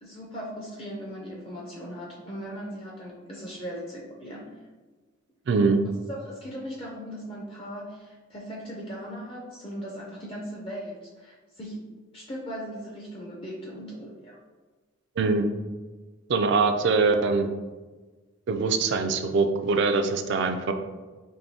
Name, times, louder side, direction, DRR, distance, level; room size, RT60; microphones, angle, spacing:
voice 1, 0.0-4.5 6.1-11.8 12.1-14.4 15.2-15.4, equal, 25° left, -3 dB, 0.4 m, -38 dB
voice 2, 5.5-5.8 15.2-15.4 16.3-17.5 18.5-20.7, right 4 dB, 55° right, 7 dB, 0.3 m, -23 dB
4.7 x 2.6 x 2.6 m, 1.3 s
head